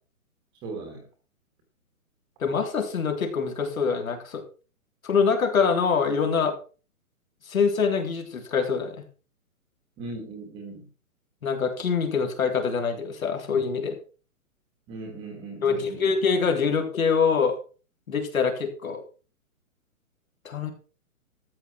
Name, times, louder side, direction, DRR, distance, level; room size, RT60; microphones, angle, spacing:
voice 1, 0.6-1.1 10.0-10.9 14.9-16.1, right 3 dB, 10° right, 3 dB, 1.4 m, -38 dB
voice 2, 2.4-4.4 5.0-6.5 7.5-9.0 11.4-14.0 15.6-17.6 18.1-19.0 20.4-20.7, left 5 dB, 65° left, 4 dB, 3.7 m, -24 dB
13.5 x 8.6 x 4.6 m, 0.37 s
hypercardioid pair, 170°, 44 cm